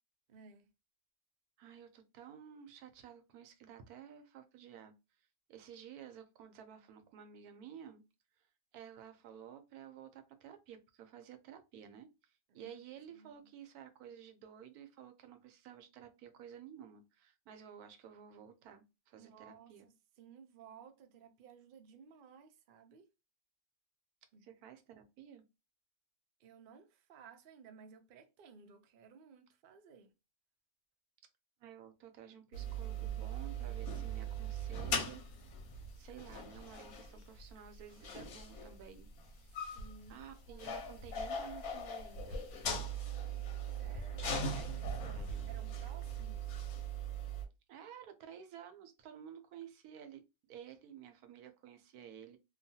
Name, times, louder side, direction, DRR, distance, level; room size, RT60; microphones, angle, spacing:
voice 1, 0.3-0.7 12.5-12.8 13.2-13.3 19.2-23.1 24.3-24.5 26.4-30.1 39.7-41.0 42.8-45.0 45.5-46.6, right 6 dB, 70° right, 0.5 m, -58 dB
voice 2, 1.6-4.9 5.5-8.0 8.7-19.9 24.4-25.4 31.6-35.2 36.0-39.8 40.1-42.4 45.0-45.5 47.7-52.4, right 9 dB, 85° right, 1.1 m, -53 dB
sound 1, 32.5-47.4, right 2 dB, 90° left, 1.2 m, -40 dB
3.0 x 2.2 x 2.7 m
omnidirectional pair, 1.5 m